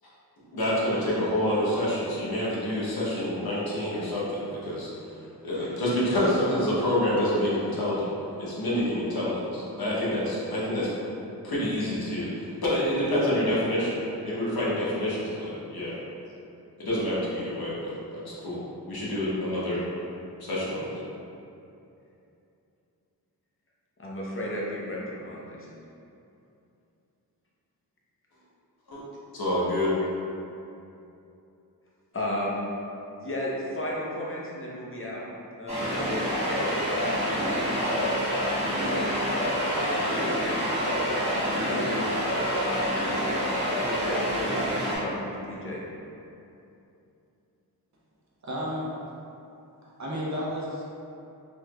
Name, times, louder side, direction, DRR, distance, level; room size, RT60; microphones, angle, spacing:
voice 1, 0.5-4.9 5.4-8.1 8.4-10.9 11.4-16.0 16.8-18.6 18.9-19.8 20.4-21.0 28.9-29.0 29.3-29.9, left 1 dB, 65° left, -8 dB, 1.0 m, -27 dB
voice 2, 24.0-25.7 32.1-32.7 33.2-35.2 35.6-37.2 37.6-42.7 43.4-45.8, left 1 dB, 35° left, -5 dB, 0.7 m, -35 dB
sound 1, 35.7-45.0, equal, 15° right, 1.3 m, -27 dB
voice 3, 48.4-48.9 49.8-50.8, equal, 45° right, -6 dB, 0.6 m, -32 dB
3.4 x 3.0 x 2.3 m, 2.7 s
cardioid pair, 60°, 38 cm